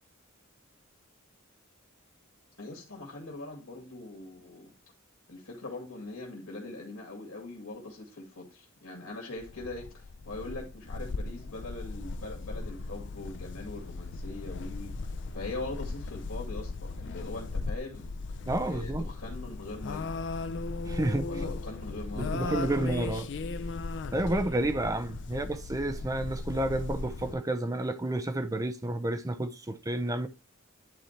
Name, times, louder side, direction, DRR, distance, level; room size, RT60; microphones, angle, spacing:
voice 1, 2.6-4.7 5.3-18.1 18.6-20.2 21.3-22.9, left 2 dB, 75° left, 2.3 m, -42 dB
sound 1, 9.4-27.3, left 3 dB, 60° left, 0.5 m, -37 dB
voice 2, 18.4-19.1 20.9-21.3 22.1-23.3 24.1-30.3, right 1 dB, 15° right, 0.6 m, -30 dB
10.5 x 4.4 x 3.2 m
head